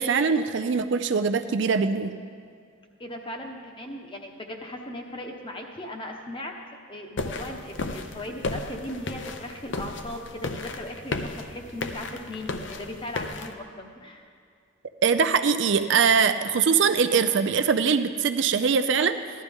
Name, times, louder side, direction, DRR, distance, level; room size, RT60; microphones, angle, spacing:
voice 1, 0.0-2.1 15.0-19.2, right 6 dB, 60° right, 9 dB, 0.4 m, -22 dB
voice 2, 3.0-6.5 6.9-14.3, left 1 dB, 25° left, 2 dB, 0.9 m, -38 dB
sound 1, 7.2-13.5, left 3 dB, 60° left, 0.6 m, -34 dB
15.0 x 12.0 x 3.5 m, 2.2 s
head